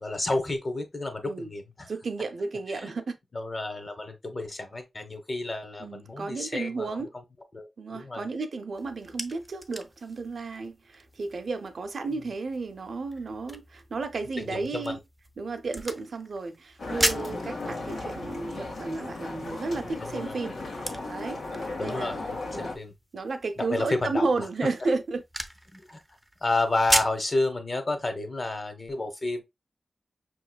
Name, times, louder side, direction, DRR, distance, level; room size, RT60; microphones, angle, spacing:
voice 1, 0.0-1.9 2.7-2.9 3.3-7.0 7.5-8.3 12.2-12.3 14.4-15.0 20.0-20.5 21.8-22.9 23.6-24.3 25.7-26.0 26.4-29.4, left 2 dB, 35° left, 1.0 m, -31 dB
voice 2, 1.9-3.2 5.8-7.1 7.8-15.0 15.4-20.6 21.1-22.2 22.5-22.7 23.1-25.2, right 3 dB, 70° right, 0.6 m, -33 dB
sound 1, 8.7-27.3, right 1 dB, 5° right, 0.6 m, -37 dB
sound 2, 16.8-22.8, left 2 dB, 85° left, 1.5 m, -36 dB
5.7 x 3.0 x 2.2 m
wide cardioid pair, 95°, 0 cm